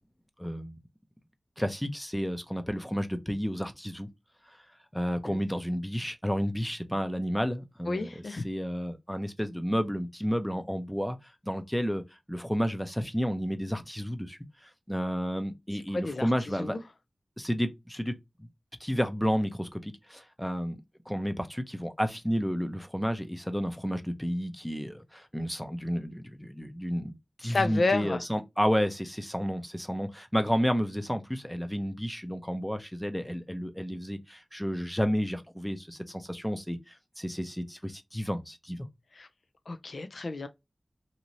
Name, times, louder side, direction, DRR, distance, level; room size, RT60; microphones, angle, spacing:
voice 1, 0.4-0.8 1.6-4.1 4.9-11.2 11.4-12.0 12.3-16.8 17.4-18.1 18.8-20.8 21.1-38.9, equal, 5° left, 0.5 m, -31 dB
voice 2, 7.9-8.4 15.9-16.3 16.6-16.8 27.4-28.2 39.2-39.3 39.7-40.5, left 3 dB, 75° left, 0.4 m, -30 dB
2.7 x 2.5 x 3.1 m
wide cardioid pair, 65°, 0 cm